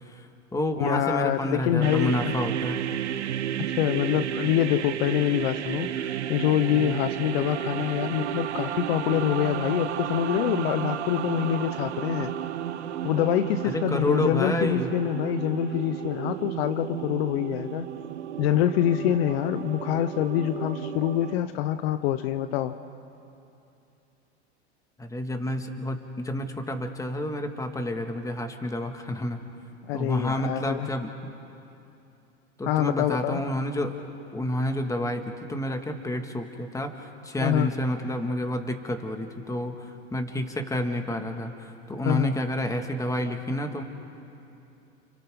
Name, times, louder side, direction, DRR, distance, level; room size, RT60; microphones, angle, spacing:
voice 1, 0.1-2.8 13.6-14.9 25.0-29.4 29.9-31.1 32.6-34.0 34.3-35.2 35.5-43.8, left 1 dB, 10° left, 5 dB, 2.1 m, -29 dB
voice 2, 0.8-2.4 3.8-12.3 13.0-17.8 18.4-22.8 29.9-30.9 32.7-33.4 37.4-37.7 42.0-42.3, left 12 dB, 60° left, 11 dB, 1.0 m, -25 dB
sound 1, 1.8-21.3, right 10 dB, 80° right, 1.2 m, -32 dB
30.0 x 30.0 x 3.9 m, 2.7 s
hypercardioid pair, 100°, 34 cm